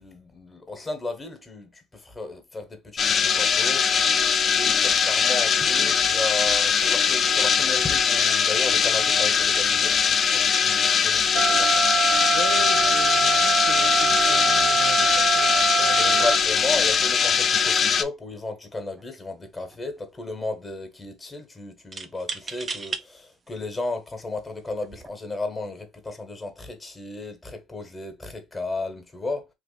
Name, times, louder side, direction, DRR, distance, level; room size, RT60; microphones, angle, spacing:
voice 1, 0.0-11.9 16.0-29.5, left 2 dB, 15° left, 1.1 m, -34 dB
sound 1, 3.0-18.0, left 6 dB, 40° left, 0.5 m, -21 dB
sound 2, 11.4-16.4, right 5 dB, 75° right, 1.1 m, -24 dB
voice 2, 12.3-16.4, left 9 dB, 80° left, 0.7 m, -38 dB
sound 3, 18.8-19.0 19.3-20.0 21.9-23.0 23.8-23.9 24.8-25.1, right 4 dB, 30° right, 0.5 m, -35 dB
3.0 x 2.4 x 4.0 m
supercardioid pair, 90°, 0 cm